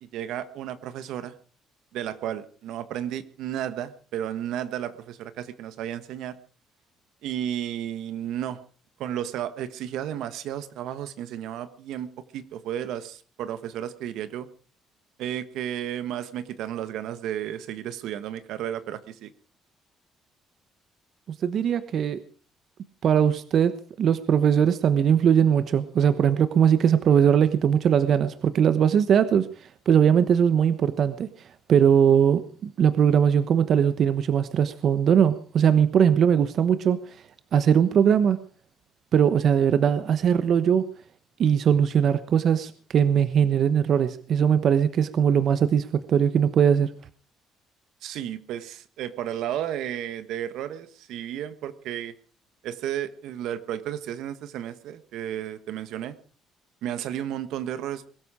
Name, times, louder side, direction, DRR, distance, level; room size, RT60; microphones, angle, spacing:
voice 1, 0.0-1.3 1.9-6.3 7.2-8.6 9.0-14.5 15.2-19.3 48.0-52.1 52.6-56.1 56.8-58.1, right 10 dB, 75° right, 1.4 m, -33 dB
voice 2, 21.4-22.2 23.0-37.2 37.5-38.4 39.1-40.9 41.4-46.9, right 8 dB, 55° right, 1.1 m, -20 dB
22.0 x 13.0 x 5.0 m
cardioid pair, 115°, 0 cm